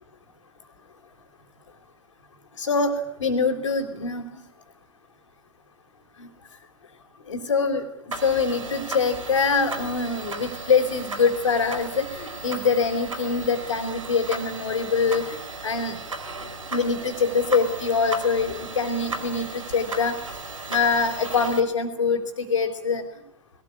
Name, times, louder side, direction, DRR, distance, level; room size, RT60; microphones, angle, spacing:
voice 1, 2.6-2.9 3.2-4.3 6.2-6.3 7.3-7.8 8.2-15.4 15.6-16.0 16.7-20.2 20.7-23.0, left 5 dB, 70° left, -2 dB, 3.9 m, -24 dB
sound 1, 8.1-21.6, right 3 dB, 80° right, 4.6 m, -36 dB
22.0 x 19.0 x 9.8 m, 0.74 s
figure-of-eight pair, 95°, 17 cm